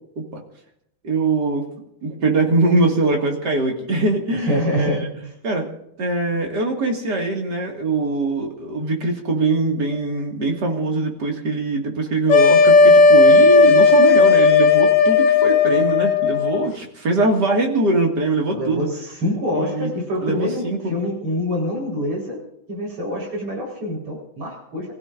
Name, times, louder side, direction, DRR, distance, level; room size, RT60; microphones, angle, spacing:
voice 1, 1.0-1.7 2.0-5.0 5.4-5.7 6.0-18.9 19.5-19.9 20.2-20.9, right 2 dB, 50° right, 1 dB, 2.7 m, -22 dB
voice 2, 4.3-5.3 18.5-22.4 22.7-24.9, equal, 90° right, -2 dB, 5.5 m, -26 dB
sound 1, 12.3-16.7, left 4 dB, 85° left, 0.7 m, -13 dB
28.5 x 15.5 x 2.6 m, 0.77 s
omnidirectional pair, 2.4 m